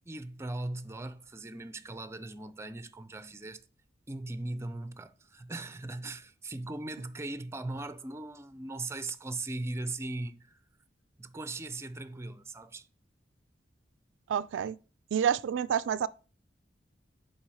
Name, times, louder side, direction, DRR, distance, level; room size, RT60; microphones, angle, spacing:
voice 1, 0.1-3.6 4.1-10.6 11.2-12.9, right 2 dB, 15° right, 0.5 m, -39 dB
voice 2, 14.3-14.8 15.1-16.1, right 8 dB, 85° right, 0.3 m, -28 dB
7.2 x 4.6 x 4.8 m
head